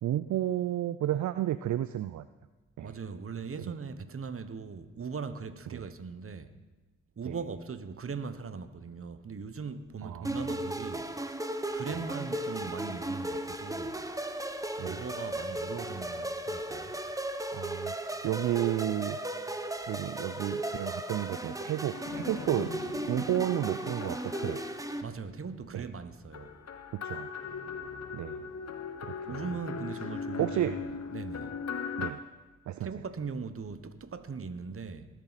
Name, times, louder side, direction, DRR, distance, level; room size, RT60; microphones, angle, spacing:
voice 1, 0.0-2.3 2.8-2.9 5.7-5.8 7.3-7.4 10.0-10.4 14.8-15.1 17.5-19.2 19.9-22.7 23.1-24.6 25.7-25.9 26.9-27.3 28.1-28.4 29.0-29.4 30.4-30.8 32.0-32.2 32.7-32.9, right 12 dB, 65° right, 0.4 m, -32 dB
voice 2, 2.8-6.5 7.2-11.1 11.7-14.0 14.8-16.9 25.0-26.5 29.2-30.8 31.1-31.5 32.8-35.1, right 5 dB, 45° right, 1.0 m, -39 dB
sound 1, 10.2-25.0, right 1 dB, 10° right, 0.9 m, -36 dB
sound 2, 21.9-25.5 26.3-32.1, left 6 dB, 55° left, 0.9 m, -40 dB
20.0 x 7.6 x 4.1 m
supercardioid pair, 50°, 31 cm